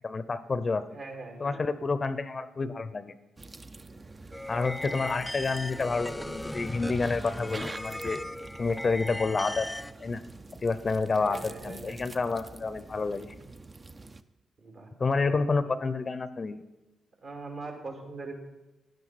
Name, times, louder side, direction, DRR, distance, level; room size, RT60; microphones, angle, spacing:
voice 1, 0.0-0.8 1.4-3.1 4.5-8.2 8.6-9.7 10.0-10.2 10.6-13.3 15.0-16.6, left 4 dB, 40° left, 14 dB, 0.6 m, -29 dB
voice 2, 0.9-1.7 4.8-5.0 11.1-12.7 14.6-14.9 15.2-15.7 17.2-18.3, right 3 dB, 60° right, 2 dB, 2.7 m, -42 dB
sound 1, 3.4-14.2, right 3 dB, 30° right, 0.6 m, -46 dB
sound 2, 4.3-9.9, left 1 dB, 10° left, 0.3 m, -38 dB
12.0 x 10.5 x 4.2 m, 1.0 s
hypercardioid pair, 40°, 0 cm